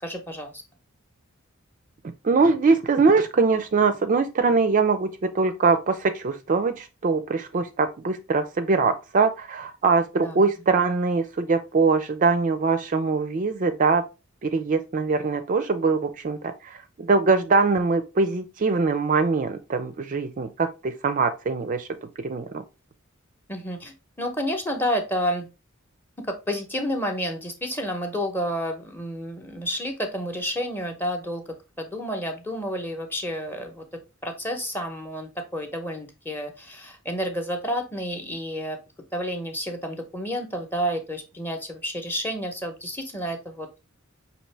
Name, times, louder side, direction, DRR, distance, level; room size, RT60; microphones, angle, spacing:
voice 1, 0.0-0.6 10.2-10.4 23.5-25.5 26.2-31.4 31.8-33.8 34.2-38.8 39.1-43.8, equal, 10° left, 0.8 m, -30 dB
voice 2, 2.2-14.0 14.4-16.4 16.6-21.9 22.2-22.6, right 4 dB, 40° right, 0.4 m, -22 dB
5.5 x 2.8 x 3.2 m
head